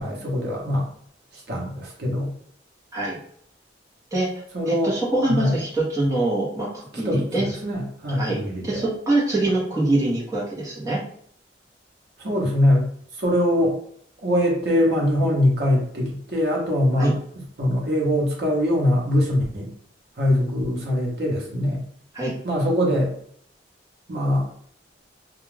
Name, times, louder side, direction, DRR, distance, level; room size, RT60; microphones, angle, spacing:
voice 1, 0.0-0.9 1.5-2.3 4.5-4.9 5.3-5.5 7.0-8.8 12.2-12.9 13.2-13.8 14.2-19.7 20.2-21.8 22.4-23.1 24.1-24.5, left 1 dB, 60° right, -2 dB, 0.9 m, -22 dB
voice 2, 4.7-7.5 8.1-11.0 17.0-17.2 22.1-22.3, right 2 dB, 20° right, -6 dB, 0.9 m, -24 dB
2.4 x 2.3 x 3.2 m, 0.63 s
head